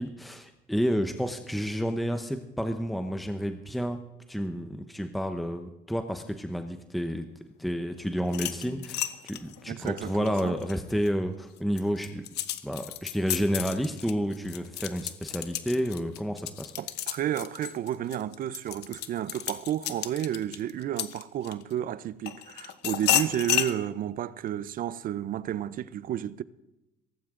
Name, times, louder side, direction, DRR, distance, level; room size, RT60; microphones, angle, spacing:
voice 1, 0.0-4.0 4.3-7.3 7.6-12.2 12.6-16.7, equal, ahead, 0.9 m, -30 dB
sound 1, 8.2-11.1 11.6-21.7 22.3-23.7, left 13 dB, 80° left, 1.0 m, -32 dB
voice 2, 9.7-10.5 16.8-26.4, right 11 dB, 55° right, 0.6 m, -32 dB
17.5 x 15.5 x 3.8 m
cardioid pair, 110°, 17 cm